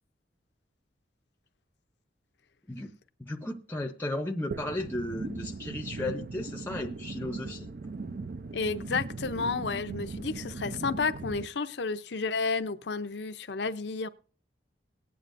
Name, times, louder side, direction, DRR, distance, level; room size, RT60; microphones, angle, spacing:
voice 1, 3.2-7.7, left 1 dB, 10° left, 0.6 m, -35 dB
sound 1, 4.5-11.5, right 3 dB, 55° right, 0.5 m, -38 dB
voice 2, 8.5-14.1, left 4 dB, 65° left, 0.6 m, -31 dB
19.0 x 8.9 x 2.5 m
head